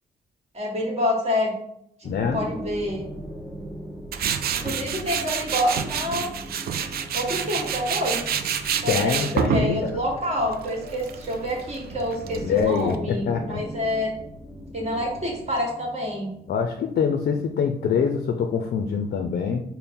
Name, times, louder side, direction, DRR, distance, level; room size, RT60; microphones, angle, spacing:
voice 1, 0.5-1.6 2.0-3.0 4.5-6.3 7.1-8.2 8.8-14.1 14.7-16.3, left 1 dB, 35° right, -1 dB, 1.4 m, -27 dB
voice 2, 2.0-2.4 8.9-9.9 12.4-13.6 16.5-19.6, left 6 dB, 60° left, 5 dB, 0.4 m, -24 dB
sound 1, 2.0-18.4, equal, 5° left, 0.8 m, -40 dB
Tools, 4.1-13.0, right 7 dB, 60° right, 0.4 m, -28 dB
4.2 x 2.1 x 3.5 m, 0.75 s
cardioid pair, 70°, 18 cm